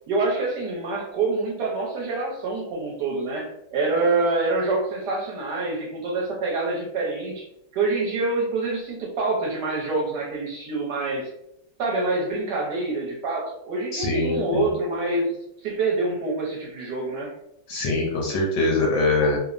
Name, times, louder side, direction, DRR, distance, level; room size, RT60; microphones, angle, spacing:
voice 1, 0.1-7.5 7.7-11.3 11.8-15.3 15.6-17.3 19.2-19.3, right 3 dB, 70° right, -3 dB, 1.2 m, -26 dB
voice 2, 13.9-14.4 17.7-19.4, left 2 dB, 70° left, -1 dB, 1.1 m, -22 dB
3.3 x 2.0 x 2.4 m, 0.79 s
omnidirectional pair, 2.1 m